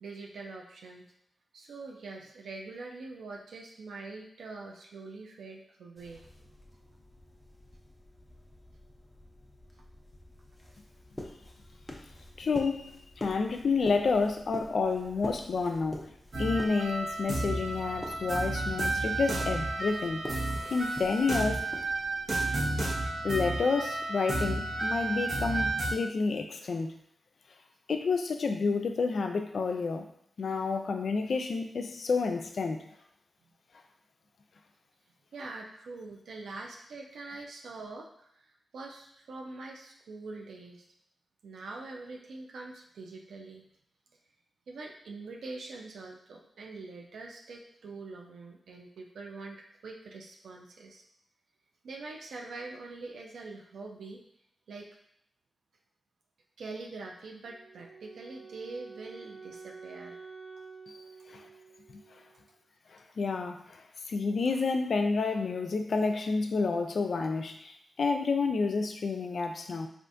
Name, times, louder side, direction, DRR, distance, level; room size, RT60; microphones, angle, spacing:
voice 1, 0.0-1.1 1.5-6.5 35.3-38.5 38.7-40.8 41.4-43.6 44.7-51.0 51.8-54.2 54.7-54.9 56.6-60.2, right 3 dB, 90° right, 0 dB, 0.4 m, -44 dB
sound 1, 6.0-23.0, left 1 dB, 10° left, 0.6 m, -47 dB
voice 2, 12.4-12.9 13.2-16.1 16.4-20.2 20.7-21.7 23.2-26.9 27.9-30.1 30.4-32.8 61.3-61.5 61.9-62.0 63.2-63.8 64.1-69.9, left 4 dB, 70° left, 6 dB, 0.3 m, -29 dB
sound 2, 16.3-25.9, right 2 dB, 60° right, 1.0 m, -32 dB
Wind instrument woodwind instrument, 57.4-62.5, right 4 dB, 35° right, 0.5 m, -49 dB
3.4 x 2.4 x 2.6 m, 0.73 s
cardioid pair, 70°, 0 cm